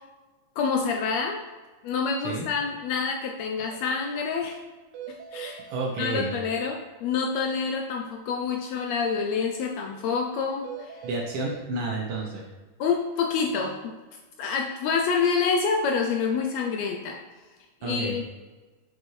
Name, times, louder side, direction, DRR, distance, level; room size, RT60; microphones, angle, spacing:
voice 1, 0.6-1.4 1.8-4.6 5.3-5.6 6.0-11.0 12.8-13.9 14.4-17.2 17.8-18.2, left 5 dB, 80° left, 2 dB, 1.7 m, -27 dB
sound 1, 3.7-3.8 4.1-4.2 4.5-4.6 4.9-5.9 10.6-11.6, right 9 dB, 90° right, 2.1 m, -40 dB
voice 2, 5.7-6.4 11.0-12.5 17.8-18.2, right 2 dB, 70° right, -1 dB, 1.3 m, -31 dB
6.9 x 6.1 x 3.2 m, 1.3 s
omnidirectional pair, 3.4 m